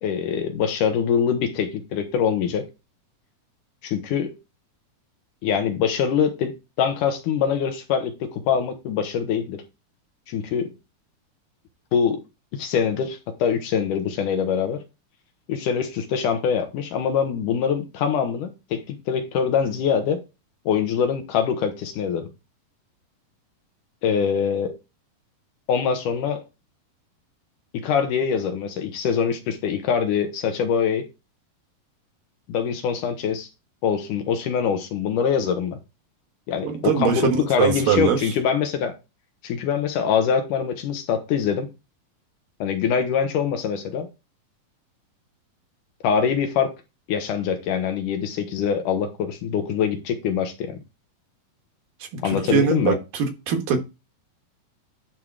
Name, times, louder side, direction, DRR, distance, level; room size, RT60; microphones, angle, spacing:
voice 1, 0.0-2.7 3.8-4.3 5.4-9.6 10.3-10.7 11.9-12.2 12.5-14.8 15.5-20.2 20.7-22.3 24.0-24.8 25.7-26.4 27.7-31.1 32.5-33.5 33.8-35.8 36.5-38.9 39.4-41.7 42.6-44.1 46.0-46.7 47.1-50.8 52.2-53.0, left 7 dB, 70° left, 2.5 m, -24 dB
voice 2, 36.6-38.2 52.2-53.8, right 7 dB, 75° right, 3.2 m, -22 dB
11.0 x 3.7 x 4.7 m
omnidirectional pair, 4.0 m